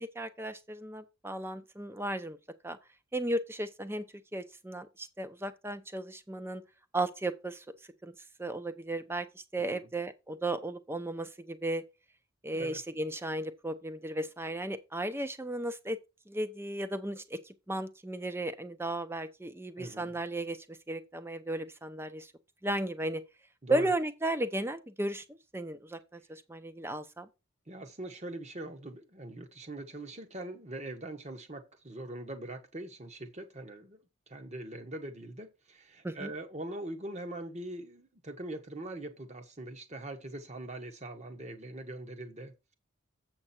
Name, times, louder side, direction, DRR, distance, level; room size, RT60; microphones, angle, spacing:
voice 1, 0.0-2.4 2.6-2.8 3.1-4.1 4.3-6.6 6.9-7.6 8.0-8.1 8.4-11.8 12.4-16.0 16.3-22.3 22.6-23.2 23.7-27.3 36.0-36.3, right 1 dB, 10° right, 0.6 m, -35 dB
voice 2, 9.6-9.9 12.5-12.8 19.8-20.2 23.6-23.9 27.7-34.0 34.3-42.7, right 1 dB, 30° right, 1.2 m, -42 dB
7.8 x 6.0 x 4.3 m
head